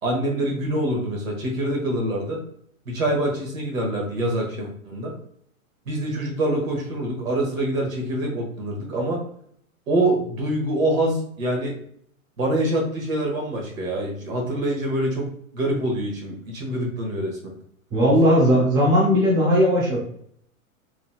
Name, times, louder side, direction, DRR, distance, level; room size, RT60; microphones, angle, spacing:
voice 1, 0.0-2.4 2.9-5.1 5.9-9.2 9.9-11.8 12.4-15.3 15.5-17.5, right 1 dB, 65° right, 0 dB, 1.3 m, -25 dB
voice 2, 17.9-20.0, equal, 10° right, -4 dB, 0.3 m, -17 dB
3.0 x 2.7 x 2.3 m, 0.65 s
hypercardioid pair, 105°, 43 cm